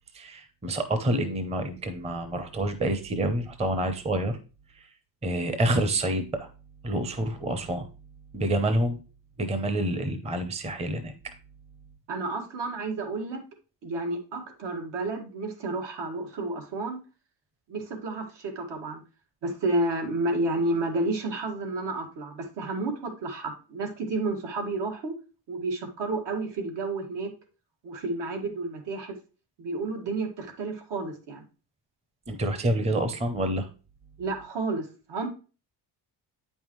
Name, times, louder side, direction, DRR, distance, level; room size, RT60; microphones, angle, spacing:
voice 1, 0.1-4.4 4.8-4.9 5.2-6.5 6.8-7.9 8.3-9.0 9.4-11.1 32.3-33.7, right 1 dB, 15° right, 8 dB, 0.6 m, -27 dB
voice 2, 12.1-13.4 13.8-17.0 17.7-19.0 19.4-25.1 25.5-27.3 27.8-29.1 29.6-31.4 34.2-35.3, right 2 dB, 80° right, 2 dB, 1.9 m, -31 dB
8.6 x 5.4 x 3.1 m, 0.33 s
cardioid pair, 175°, 42 cm